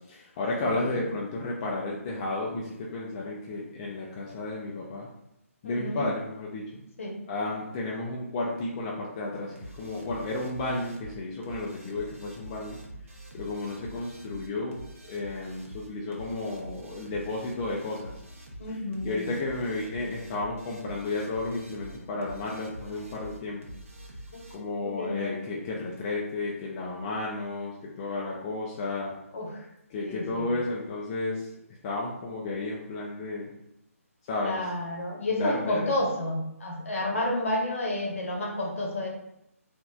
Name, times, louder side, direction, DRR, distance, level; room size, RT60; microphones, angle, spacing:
voice 1, 0.1-5.1 5.6-6.7 7.3-12.8 13.3-14.8 15.1-18.2 19.0-23.6 24.5-29.1 29.9-31.5 31.8-33.5 34.3-34.6 35.3-35.9, left 2 dB, 25° left, -3 dB, 0.3 m, -32 dB
voice 2, 0.6-1.0 5.6-6.0 7.0-7.1 18.6-19.3 24.8-25.3 29.3-29.6 30.0-30.5 34.4-39.1, left 1 dB, 60° left, -2 dB, 0.9 m, -30 dB
sound 1, 9.6-24.6, right 1 dB, 60° right, 0.7 m, -46 dB
2.9 x 2.5 x 2.3 m, 0.80 s
figure-of-eight pair, 145°, 8 cm